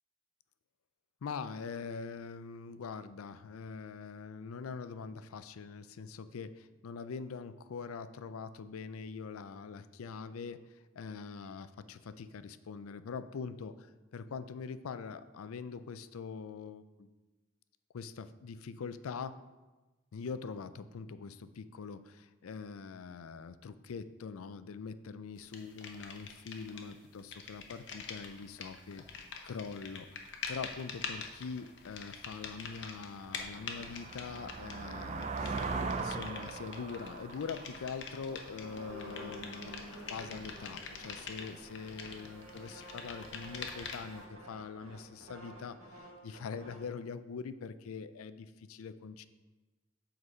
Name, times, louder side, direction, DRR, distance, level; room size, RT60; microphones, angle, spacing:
voice 1, 1.2-17.1 17.9-19.4 20.1-30.2 30.5-35.6 36.0-49.3, left 5 dB, 90° left, 13 dB, 0.4 m, -43 dB
sound 1, 25.5-26.9 27.2-44.2, left 5 dB, 55° left, 0.8 m, -45 dB
sound 2, 31.9-32.0 32.5-39.1, right 4 dB, 30° right, 0.4 m, -40 dB
sound 3, 38.1-46.9, right 1 dB, 85° right, 1.5 m, -50 dB
7.8 x 4.0 x 5.5 m, 1.2 s
head